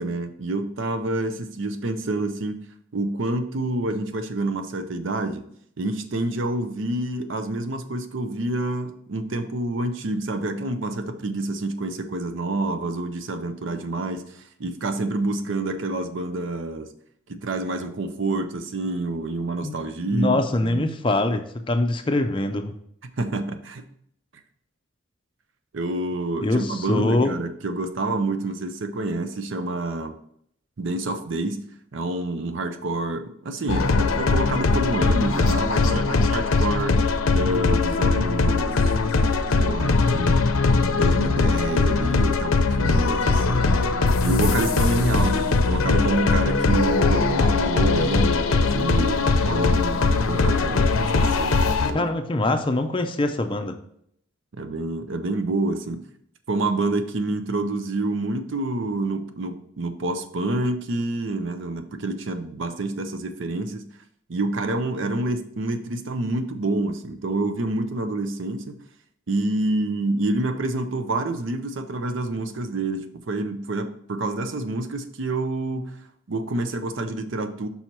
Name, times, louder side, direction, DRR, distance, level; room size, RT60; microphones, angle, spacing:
voice 1, 0.0-2.6 2.9-5.4 5.8-16.9 17.3-20.8 23.0-23.8 25.7-30.2 30.8-31.6 31.9-38.8 39.5-40.4 40.9-43.7 44.2-52.1 54.5-56.0 56.5-63.8 64.3-68.7 69.3-75.9 76.3-77.7, right 2 dB, 65° right, 8 dB, 0.6 m, -28 dB
voice 2, 20.1-22.7 26.4-27.3 51.9-53.7, left 2 dB, 25° left, 6 dB, 0.5 m, -23 dB
sound 1, 33.7-51.9, left 3 dB, 90° left, 0.6 m, -21 dB
5.5 x 4.4 x 4.5 m, 0.69 s
head